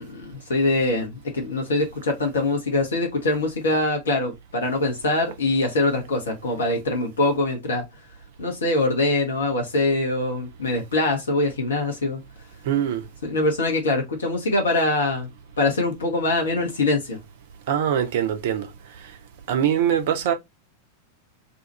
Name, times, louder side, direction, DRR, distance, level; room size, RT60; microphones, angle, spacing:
voice 1, 0.0-7.8 8.4-12.2 13.2-15.3 15.6-17.2, left 2 dB, 65° left, 0.9 m, -23 dB
voice 2, 12.6-13.1 17.7-18.7 19.5-20.3, right 9 dB, 55° right, 0.6 m, -22 dB
2.7 x 2.4 x 4.0 m
figure-of-eight pair, 90°, 0 cm